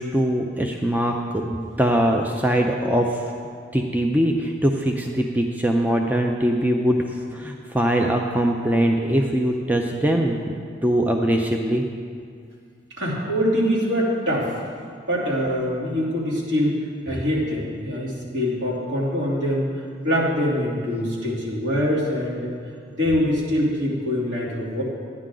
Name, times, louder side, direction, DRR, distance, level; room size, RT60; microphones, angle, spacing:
voice 1, 0.0-3.3 3.7-10.5 10.8-11.8, right 1 dB, 10° right, 2 dB, 0.4 m, -22 dB
voice 2, 13.0-14.5 15.1-16.8 17.0-19.7 20.0-22.5 22.9-24.8, equal, 65° right, -7 dB, 3.1 m, -24 dB
13.5 x 9.7 x 3.8 m, 2.2 s
head